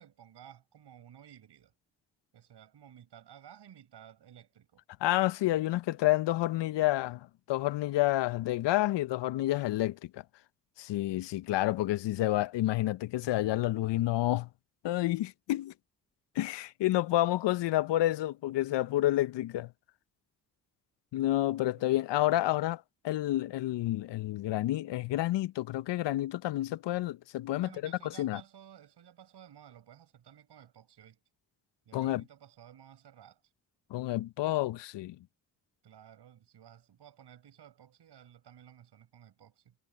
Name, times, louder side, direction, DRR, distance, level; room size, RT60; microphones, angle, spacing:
voice 1, 0.0-1.7 2.3-4.8 22.1-22.7 27.6-31.2 31.9-33.4 35.8-39.8, right 10 dB, 65° right, 7.4 m, -55 dB
voice 2, 5.0-10.2 10.8-14.5 14.8-15.7 16.3-19.7 21.1-27.9 28.2-28.4 31.9-32.2 33.9-35.2, left 15 dB, 70° left, 1.1 m, -29 dB
hypercardioid pair, 45°, 44 cm